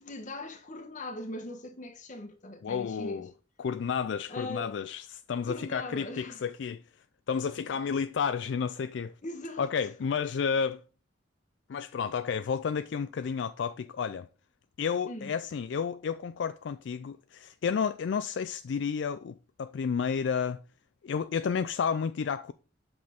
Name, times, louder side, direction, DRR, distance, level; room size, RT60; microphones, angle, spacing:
voice 1, 0.0-3.3 4.3-4.7 5.4-6.4 9.2-9.7 15.1-15.3, left 1 dB, 40° left, 1.2 m, -40 dB
voice 2, 2.6-3.3 3.6-6.8 7.3-9.1 9.6-10.8 11.7-14.3 14.8-20.6 21.0-22.5, left 6 dB, 65° left, 0.3 m, -31 dB
7.6 x 6.0 x 3.6 m
head